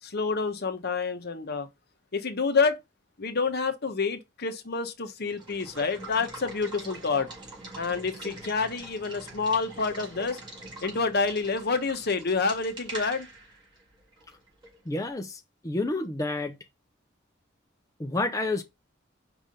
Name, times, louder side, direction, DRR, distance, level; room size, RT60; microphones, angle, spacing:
voice 1, 0.0-1.7 2.1-2.8 3.2-7.3 7.7-10.4 10.8-13.3, left 4 dB, 55° left, 1.0 m, -28 dB
Water / Water tap faucet / Liquid, 5.2-14.9, right 2 dB, 25° right, 3.2 m, -43 dB
voice 2, 14.9-16.6 18.0-18.6, left 2 dB, 15° left, 0.6 m, -29 dB
5.5 x 3.4 x 5.2 m
head